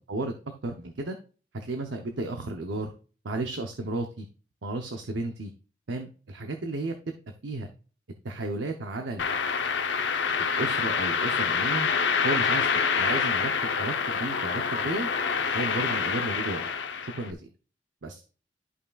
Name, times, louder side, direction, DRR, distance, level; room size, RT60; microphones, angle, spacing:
voice 1, 0.6-1.2 1.5-2.9 3.2-4.3 4.6-5.5 5.9-6.9 7.4-7.7 8.2-9.2 10.4-11.9 12.2-12.7 13.0-15.1 15.5-16.6 17.2-17.5 18.0-18.2, right 2 dB, 85° right, 5 dB, 0.8 m, -33 dB
sound 1, 9.2-17.3, left 5 dB, 80° left, 0.8 m, -27 dB
12.5 x 5.5 x 2.4 m, 0.38 s
head